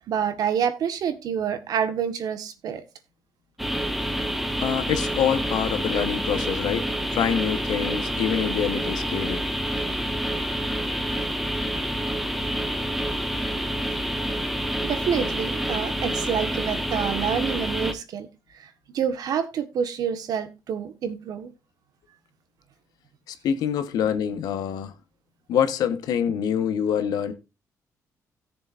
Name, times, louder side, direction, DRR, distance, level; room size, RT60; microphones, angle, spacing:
voice 1, 0.1-2.8 14.8-18.3 18.6-21.5, right 8 dB, 70° right, 1.5 m, -27 dB
sound 1, 3.6-17.9, equal, ahead, 1.1 m, -28 dB
voice 2, 4.6-9.4 23.3-24.9 25.5-27.3, left 8 dB, 90° left, 1.2 m, -26 dB
17.0 x 6.9 x 2.6 m
cardioid pair, 110°, 7 cm